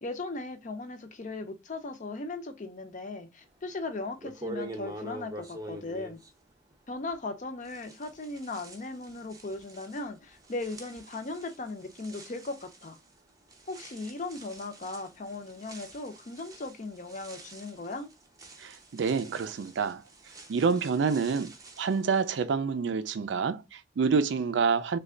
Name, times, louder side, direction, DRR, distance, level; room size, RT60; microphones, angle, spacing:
voice 1, 0.0-6.2 6.9-13.0 13.7-18.1, left 2 dB, 45° left, 0.6 m, -38 dB
sound 1, 3.7-3.8 4.2-7.3 7.6-22.4, right 1 dB, 20° right, 0.7 m, -46 dB
voice 2, 18.6-20.0 20.5-25.0, right 5 dB, 70° right, 0.4 m, -28 dB
3.2 x 2.3 x 3.7 m
head